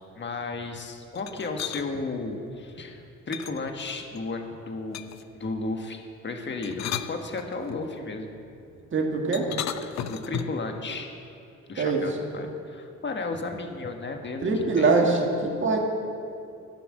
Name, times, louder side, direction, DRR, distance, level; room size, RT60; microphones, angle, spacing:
voice 1, 0.1-5.0 5.3-8.3 9.8-11.1 11.7-14.5 14.8-14.9, left 3 dB, 40° left, 4 dB, 1.5 m, -34 dB
sound 1, 1.1-1.9 3.3-4.2 4.9-5.3 6.5-7.8 9.3-10.7, left 10 dB, 60° left, 0.6 m, -35 dB
voice 2, 8.9-9.5 11.8-12.0 14.4-15.8, right 3 dB, 40° right, 0 dB, 2.0 m, -23 dB
13.5 x 5.9 x 7.4 m, 2.5 s
cardioid pair, 90°, 30 cm